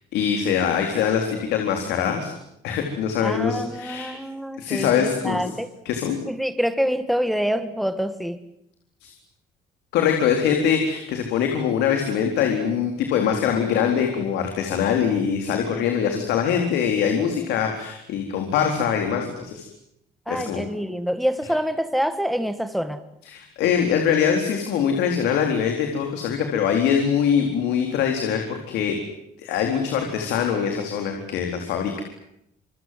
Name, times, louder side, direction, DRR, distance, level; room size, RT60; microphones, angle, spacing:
voice 1, 0.1-2.3 2.6-4.1 4.6-5.4 5.9-6.2 9.0-9.1 9.9-19.7 20.3-20.6 23.3-29.0 29.4-32.0, left 7 dB, 85° left, 3 dB, 4.0 m, -23 dB
voice 2, 3.2-5.7 6.3-8.4 20.3-23.0, equal, ahead, 10 dB, 1.9 m, -26 dB
27.5 x 24.5 x 7.7 m, 0.77 s
cardioid pair, 110°, 17 cm